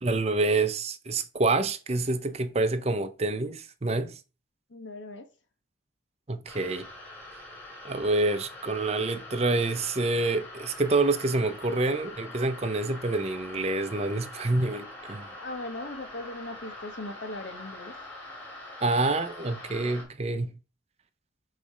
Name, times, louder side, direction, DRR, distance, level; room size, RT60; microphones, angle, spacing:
voice 1, 0.0-4.2 6.3-6.9 7.8-15.3 18.8-20.6, right 2 dB, 35° right, 0.6 m, -27 dB
voice 2, 4.7-5.3 15.4-17.9, left 2 dB, 85° left, 1.3 m, -39 dB
sound 1, 6.5-20.0, left 1 dB, 10° left, 2.4 m, -44 dB
6.9 x 3.2 x 5.0 m
head